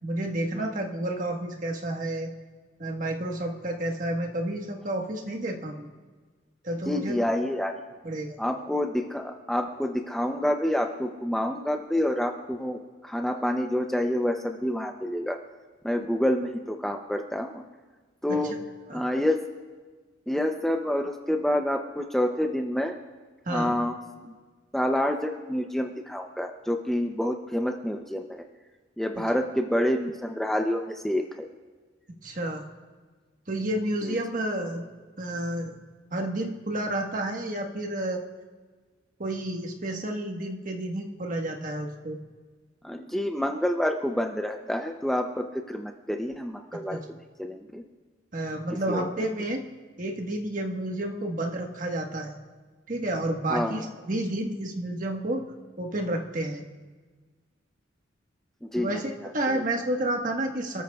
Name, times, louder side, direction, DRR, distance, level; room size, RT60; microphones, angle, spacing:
voice 1, 0.0-2.3 2.8-5.9 6.6-7.2 8.0-8.4 18.3-18.4 18.9-19.0 23.4-23.7 29.2-29.3 32.2-32.6 33.5-34.9 35.2-35.7 36.1-38.2 39.2-42.2 48.3-49.6 50.0-52.4 52.9-55.4 55.8-56.6 58.8-60.8, right 1 dB, 45° right, 2 dB, 1.4 m, -30 dB
voice 2, 6.9-7.7 8.4-15.4 15.8-17.6 18.2-18.6 18.9-19.4 20.3-23.0 23.5-23.9 24.2-24.4 24.7-28.4 29.0-31.5 34.0-34.2 42.8-47.0 47.4-47.8 48.9-49.1 53.5-53.8 58.6-59.6, left 1 dB, ahead, 3 dB, 0.5 m, -28 dB
28.0 x 13.5 x 2.3 m, 1.4 s
head